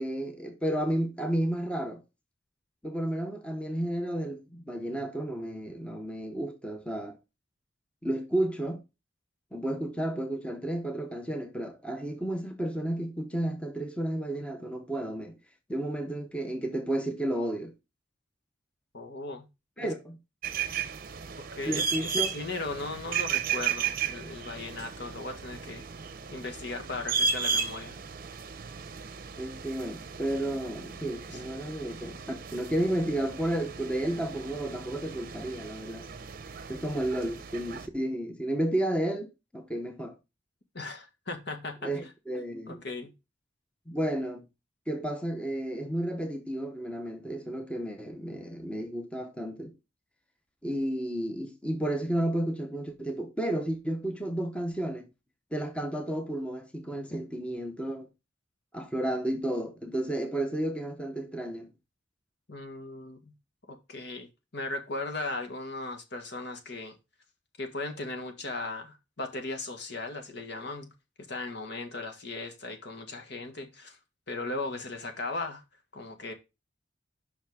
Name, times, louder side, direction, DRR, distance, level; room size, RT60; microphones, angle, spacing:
voice 1, 0.0-2.0 2.8-7.2 8.0-8.8 9.5-15.4 15.7-17.7 19.8-20.2 21.7-22.3 29.4-36.1 36.7-40.1 41.8-42.8 43.9-44.5 44.9-49.7 50.6-55.1 55.5-58.1 58.7-61.7, right 1 dB, 5° left, 0.8 m, -32 dB
voice 2, 18.9-19.5 19.8-19.9 21.4-25.8 26.3-28.0 31.3-31.4 40.7-41.9 42.7-43.1 62.5-63.3 63.7-67.0 67.6-70.9 71.3-74.0 74.3-75.6 75.9-76.3, left 2 dB, 65° left, 1.7 m, -37 dB
sound 1, 20.4-37.9, right 6 dB, 50° right, 0.7 m, -35 dB
7.3 x 5.7 x 3.5 m
head